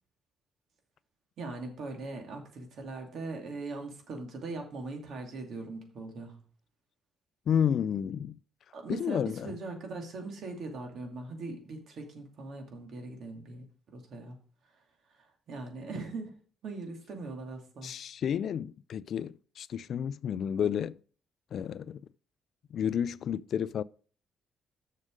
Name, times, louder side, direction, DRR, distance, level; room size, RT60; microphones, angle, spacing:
voice 1, 1.4-6.4 8.7-13.7 13.9-14.4 15.2-16.3 16.6-17.9, right 3 dB, 65° right, 2.5 m, -40 dB
voice 2, 7.5-8.4 8.9-9.5 17.8-21.0 21.5-22.0 22.7-23.8, left 8 dB, 65° left, 0.3 m, -31 dB
7.3 x 6.5 x 5.1 m
cardioid pair, 90°, 0 cm